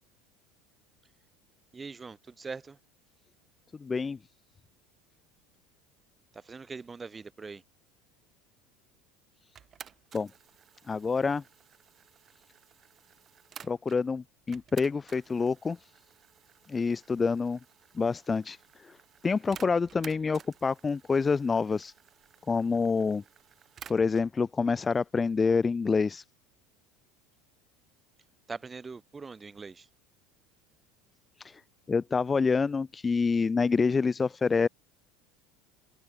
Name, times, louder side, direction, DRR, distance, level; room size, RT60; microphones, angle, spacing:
voice 1, 1.7-2.8 6.3-7.6 28.5-29.9, right 4 dB, 20° right, 1.9 m, -42 dB
voice 2, 3.8-4.2 10.1-10.3 10.9-11.4 13.6-15.8 16.7-17.6 18.0-18.6 18.8-18.9 19.2-21.9 22.5-23.2 23.9-26.2 31.4-31.6 31.9-34.7, left 4 dB, 20° left, 0.5 m, -27 dB
sound 1, 9.6-14.0 14.5-24.3, right 8 dB, 35° right, 1.3 m, -53 dB
supercardioid pair, 100°, 0 cm